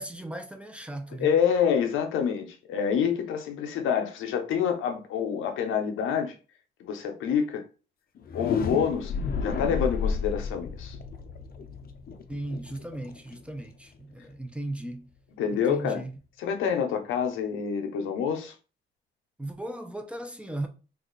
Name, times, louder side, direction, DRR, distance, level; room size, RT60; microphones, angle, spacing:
voice 1, 0.0-1.3 12.3-15.1 15.5-16.1 19.4-20.7, right 1 dB, 5° right, 0.5 m, -36 dB
voice 2, 1.2-6.3 6.8-7.6 8.3-9.1 9.4-11.0 15.4-16.0 16.4-18.5, left 7 dB, 85° left, 0.7 m, -27 dB
sound 1, 8.2-14.0, left 5 dB, 50° left, 0.5 m, -32 dB
2.8 x 2.4 x 3.8 m
cardioid pair, 90°, 20 cm